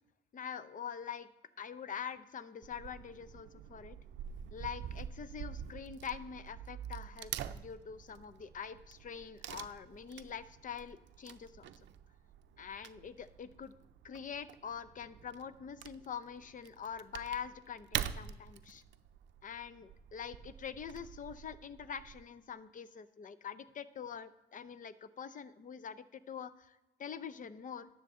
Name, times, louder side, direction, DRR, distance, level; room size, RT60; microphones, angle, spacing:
voice 1, 0.3-1.3 1.6-4.0 4.5-11.7 12.6-13.7 14.0-18.8 19.4-27.9, left 7 dB, 40° left, 15 dB, 0.6 m, -45 dB
Wood / Tearing, 2.6-22.2, right 10 dB, 65° right, 0.5 m, -46 dB
12.0 x 7.4 x 3.7 m, 1.0 s
cardioid pair, 90°, 20 cm